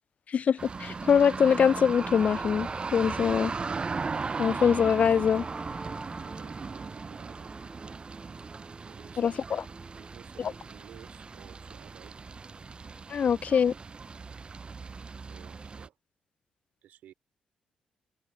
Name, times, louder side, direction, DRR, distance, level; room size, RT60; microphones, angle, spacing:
voice 1, 0.3-3.5 4.4-5.4 9.2-9.6 10.4-10.5 13.1-13.7, left 7 dB, 50° left, 0.4 m, -24 dB
sound 1, 0.6-15.9, right 4 dB, 35° right, 0.3 m, -37 dB
sound 2, 1.4-11.8, right 2 dB, 15° right, 1.0 m, -48 dB
voice 2, 5.8-8.2 8.8-9.6 10.0-12.2 13.1-13.3 15.3-16.0 16.8-17.1, right 11 dB, 75° right, 4.4 m, -55 dB
supercardioid pair, 50°, 3 cm